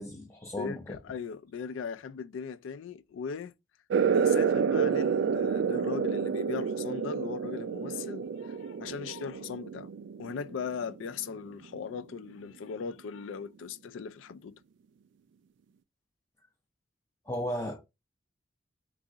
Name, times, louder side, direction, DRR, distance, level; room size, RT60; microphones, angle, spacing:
voice 1, 0.0-1.0 17.3-17.9, equal, 15° left, 0.4 m, -35 dB
voice 2, 0.6-3.5 4.1-9.9 10.2-14.5, left 6 dB, 85° left, 0.4 m, -38 dB
sound 1, 3.9-11.1, right 6 dB, 70° right, 0.3 m, -29 dB
3.9 x 2.4 x 3.6 m
head